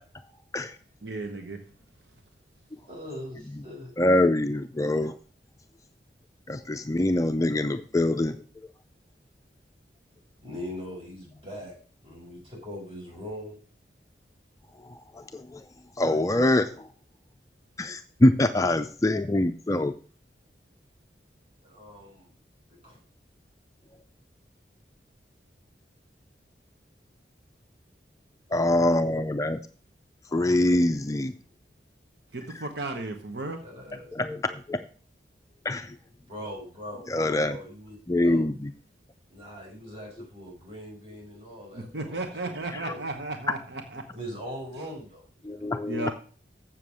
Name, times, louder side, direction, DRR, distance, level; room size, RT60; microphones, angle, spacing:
voice 1, 1.0-1.6 32.3-33.6 41.7-44.0 44.8-44.9 45.9-46.1, right 2 dB, 75° right, 5 dB, 1.0 m, -34 dB
voice 2, 2.9-3.9 10.4-11.8 12.0-13.6 21.6-22.3 22.7-23.0 33.6-34.1 36.3-38.5 39.3-43.0 44.1-45.9, equal, 35° right, -4 dB, 5.0 m, -41 dB
voice 3, 4.0-5.2 6.5-8.4 14.8-15.6 16.0-16.9 17.8-19.9 28.5-29.6 30.3-31.3 34.1-34.8 35.6-36.0 37.1-37.6 38.1-38.7 42.8-42.9 45.4-46.1, left 1 dB, 20° left, 8 dB, 0.4 m, -24 dB
7.5 x 7.1 x 6.2 m, 0.41 s
head